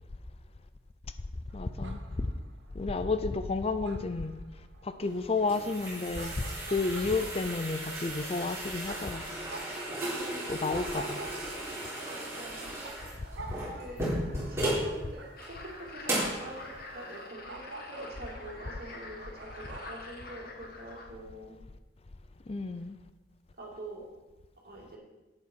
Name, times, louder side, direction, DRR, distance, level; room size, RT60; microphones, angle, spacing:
voice 1, 1.5-2.3 2.7-6.4 6.7-9.2 10.5-11.2 22.5-23.0, left 3 dB, 35° left, 11 dB, 0.5 m, -31 dB
sound 1, 1.5-20.0, right 3 dB, 75° right, 1.5 m, -48 dB
sound 2, 5.1-14.9 15.4-15.5 16.0-16.4, right 1 dB, 15° right, 3.7 m, -35 dB
voice 2, 10.0-10.6 12.0-12.8 13.6-14.2 14.5-15.2 15.5-21.6 23.6-24.1 24.6-25.0, right 1 dB, 55° right, -2 dB, 2.7 m, -45 dB
sound 3, 15.4-21.1, left 3 dB, 55° left, 1.4 m, -47 dB
11.0 x 8.7 x 4.6 m, 1.1 s
head